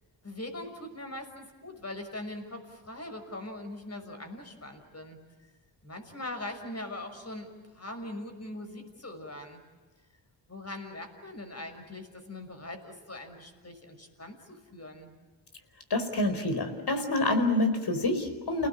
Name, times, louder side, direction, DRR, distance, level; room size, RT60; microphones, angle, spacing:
voice 1, 0.2-5.2 5.8-9.6 10.5-15.1, left 1 dB, 35° left, 6 dB, 6.2 m, -41 dB
voice 2, 15.9-18.7, left 2 dB, 60° left, 8 dB, 4.8 m, -27 dB
30.0 x 19.5 x 8.9 m, 1.3 s
cardioid pair, 60°, 45 cm